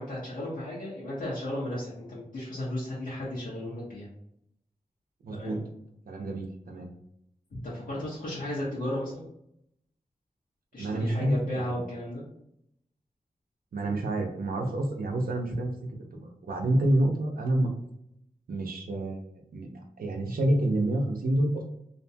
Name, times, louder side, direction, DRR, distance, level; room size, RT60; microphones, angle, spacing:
voice 1, 0.0-4.1 5.3-5.6 7.6-9.3 10.7-12.2, left 1 dB, 70° left, -8 dB, 0.9 m, -34 dB
voice 2, 5.2-5.6 6.1-6.9 10.8-11.8 13.7-15.7 16.1-17.7 18.5-21.6, right 1 dB, 90° right, 2 dB, 0.6 m, -28 dB
2.5 x 2.2 x 2.6 m, 0.76 s
wide cardioid pair, 100°, 15 cm